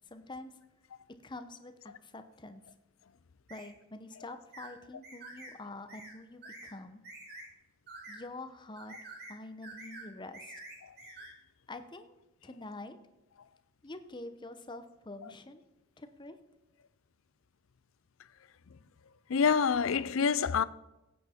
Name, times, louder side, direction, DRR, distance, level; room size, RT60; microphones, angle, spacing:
voice 1, 0.1-0.5 1.2-2.6 3.5-7.0 8.1-8.9 9.3-10.5 11.7-12.1 12.4-13.0 13.8-15.6 16.0-16.4, left 2 dB, 20° left, 0.8 m, -46 dB
sound 1, 3.5-3.7 4.5-4.7 5.0-5.5 5.9-6.1 6.4-6.7 7.0-7.5 7.9-8.2 8.8-9.4 9.6-10.1 10.3-11.3, right 2 dB, 50° right, 3.7 m, -48 dB
voice 2, 19.3-20.6, left 6 dB, 70° left, 0.5 m, -27 dB
16.0 x 8.5 x 4.4 m
head